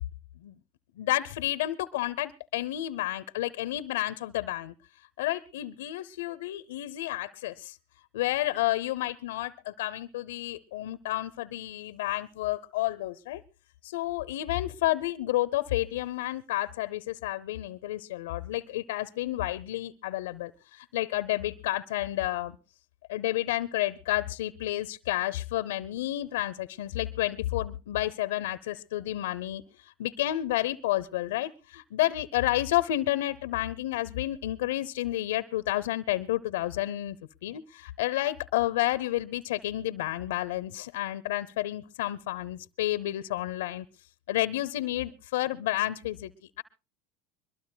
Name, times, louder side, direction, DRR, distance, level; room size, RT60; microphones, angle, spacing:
voice 1, 1.0-4.7 5.2-7.8 8.1-13.4 13.8-22.6 23.1-29.6 30.0-37.2 37.4-43.9 44.3-46.3 46.6-46.7, left 15 dB, 90° left, 14 dB, 0.7 m, -30 dB
22.5 x 21.5 x 2.2 m, 0.33 s
supercardioid pair, 130°, 0 cm